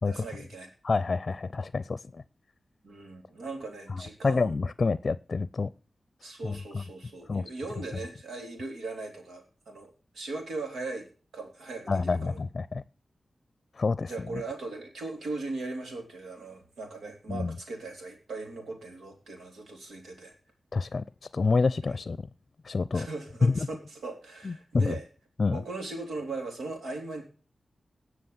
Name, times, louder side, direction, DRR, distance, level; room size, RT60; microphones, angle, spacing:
voice 1, 0.0-0.7 2.8-4.5 6.2-11.1 11.3-12.4 14.1-20.3 21.8-21.9 22.9-25.0 25.5-27.2, right 3 dB, 90° right, 3.7 m, -39 dB
voice 2, 0.8-2.2 4.2-5.7 6.4-6.6 7.3-7.4 11.9-12.8 13.8-14.1 17.3-17.5 20.7-21.1 21.3-22.3 22.6-23.1 23.4-23.7 24.4-25.0 25.4-25.6, left 4 dB, 55° left, 0.5 m, -27 dB
18.0 x 6.3 x 7.2 m
cardioid pair, 40°, 0 cm